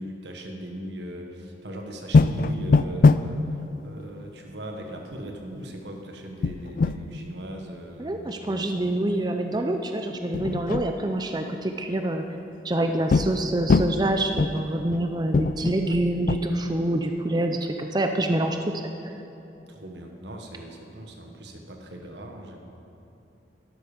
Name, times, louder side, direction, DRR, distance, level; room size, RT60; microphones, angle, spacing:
voice 1, 0.0-8.8 19.7-22.6, right 1 dB, 85° right, 2 dB, 1.5 m, -39 dB
sound 1, 2.1-3.3 3.6-3.7 4.0-4.1 6.4-7.0 9.5-9.8 10.3-10.9 13.1-13.4 13.7-14.0 14.4-15.0 15.3-16.4, left 4 dB, 50° left, 0.3 m, -21 dB
voice 2, 8.0-12.2 12.6-18.6, right 1 dB, 25° right, 5 dB, 0.5 m, -26 dB
12.5 x 12.0 x 5.1 m, 2.8 s
head